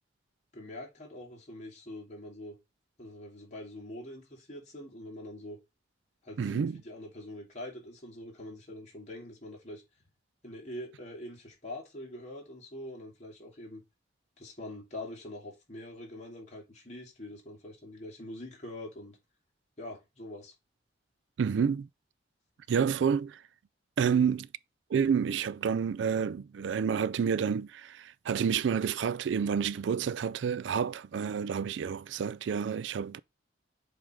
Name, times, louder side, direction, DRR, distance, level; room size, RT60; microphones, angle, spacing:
voice 1, 0.5-2.6 3.0-5.6 6.2-9.8 10.4-13.8 14.4-19.2 19.8-20.5 24.0-24.3, left 1 dB, 35° left, 2.9 m, -44 dB
voice 2, 6.4-6.8 21.4-21.9 22.7-23.4 24.0-24.5 24.9-33.2, right 7 dB, 80° right, 0.4 m, -29 dB
7.8 x 3.4 x 3.7 m
head